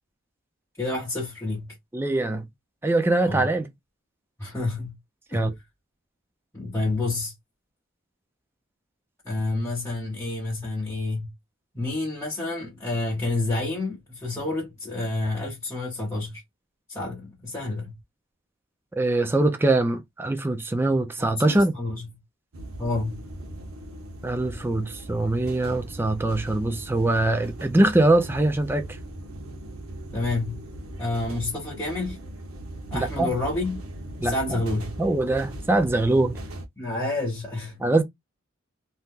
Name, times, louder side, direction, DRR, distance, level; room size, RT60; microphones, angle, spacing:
voice 1, 0.8-1.7 3.2-3.5 4.4-4.9 5.3-5.5 6.5-7.3 9.2-11.3 11.7-16.4 16.9-17.9 21.2-22.1 22.8-23.2 30.1-30.6 31.0-32.2 32.9-33.8 34.2-34.9 36.8-37.8, left 2 dB, 15° left, 0.9 m, -29 dB
voice 2, 1.9-2.5 2.8-3.7 5.3-5.5 19.0-21.7 24.2-28.9 32.9-33.3 34.2-34.3 35.0-36.4 37.8-38.0, right 2 dB, 10° right, 0.4 m, -23 dB
sound 1, 22.5-36.6, right 1 dB, 90° right, 0.8 m, -38 dB
2.8 x 2.1 x 3.5 m
head